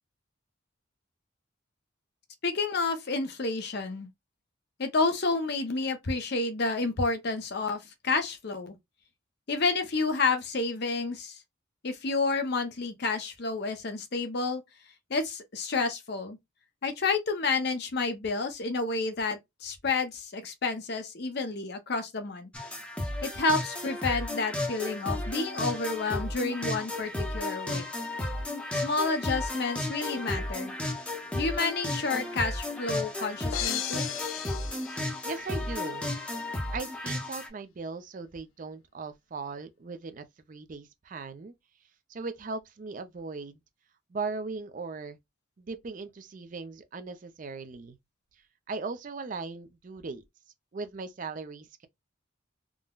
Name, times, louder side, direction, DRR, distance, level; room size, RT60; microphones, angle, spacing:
voice 1, 2.4-4.1 4.8-8.8 9.5-11.4 11.8-14.6 15.1-16.4 16.8-22.5 23.2-27.8 28.7-30.8 31.3-34.1, left 3 dB, 55° left, 0.7 m, -30 dB
sound 1, 22.5-37.5, left 1 dB, 5° left, 0.6 m, -33 dB
sound 2, 33.5-35.8, left 11 dB, 80° left, 0.3 m, -36 dB
voice 2, 35.2-36.0 36.7-41.5 42.1-43.6 44.1-45.2 45.6-48.0 48.7-50.2 50.7-51.9, right 4 dB, 40° right, 0.4 m, -38 dB
3.7 x 2.0 x 2.2 m
head